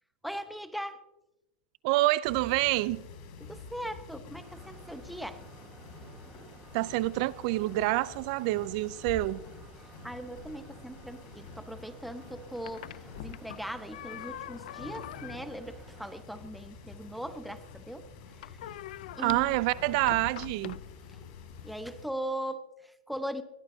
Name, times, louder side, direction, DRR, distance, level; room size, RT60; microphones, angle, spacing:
voice 1, 0.2-1.0 3.4-5.4 10.0-18.1 18.4-18.6 19.2-19.5 21.1-21.2 21.6-23.4, equal, ahead, 0.9 m, -39 dB
voice 2, 1.8-3.0 6.7-9.4 19.2-20.8, right 19 dB, 50° right, 0.4 m, -27 dB
sound 1, 2.2-22.1, left 4 dB, 50° left, 5.6 m, -49 dB
sound 2, 4.4-16.2, right 5 dB, 20° right, 1.5 m, -55 dB
sound 3, 12.2-21.7, left 14 dB, 70° left, 0.4 m, -46 dB
20.5 x 16.5 x 2.7 m
supercardioid pair, 145°, 5 cm